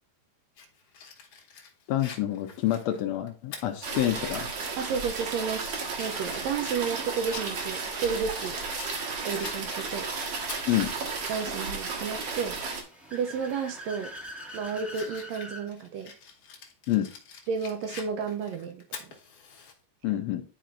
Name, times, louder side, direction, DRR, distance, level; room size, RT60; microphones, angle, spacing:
Fire, 0.6-4.4 4.8-4.9 5.4-9.0 9.4-11.4 11.8-11.9 13.4-13.7 14.1-19.7, left 5 dB, 60° left, 1.9 m, -46 dB
voice 1, 1.9-4.5 10.7-10.9 16.9-17.1 20.0-20.4, left 13 dB, 75° left, 1.7 m, -27 dB
sound 1, 3.8-12.8, right 4 dB, 60° right, 2.3 m, -33 dB
voice 2, 4.8-8.6 9.2-10.1 11.3-12.6 13.1-14.1 14.5-16.1 17.5-19.1, right 6 dB, 80° right, 1.6 m, -32 dB
Car / Accelerating revving vroom, 12.4-15.7, equal, ahead, 0.8 m, -43 dB
11.0 x 4.3 x 2.5 m
omnidirectional pair, 3.4 m